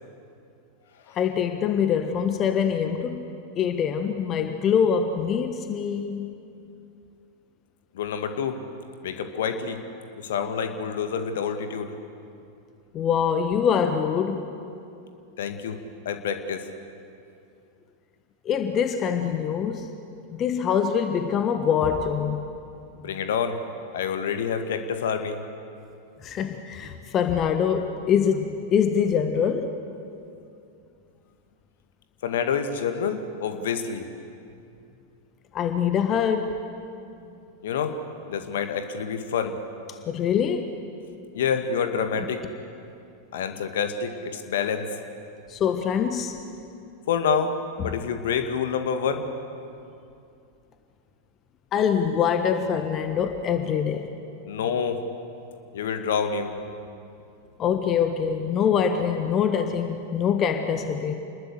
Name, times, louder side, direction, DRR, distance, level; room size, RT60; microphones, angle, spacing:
voice 1, 1.1-6.3 12.9-14.5 18.4-19.9 20.3-22.5 26.2-29.7 35.5-36.6 40.1-40.7 45.5-46.4 51.7-54.1 57.6-61.1, left 7 dB, 30° left, 7 dB, 1.4 m, -24 dB
voice 2, 7.9-8.6 9.0-9.8 10.2-11.9 15.4-15.8 16.1-16.6 23.0-23.6 23.9-25.4 32.2-34.1 37.6-38.0 38.3-39.6 41.3-42.4 43.3-44.9 47.1-47.5 47.8-49.3 54.5-55.0 55.7-56.5, left 6 dB, 60° left, 7 dB, 1.9 m, -27 dB
28.0 x 21.0 x 8.2 m, 2.6 s
figure-of-eight pair, 90°, 0 cm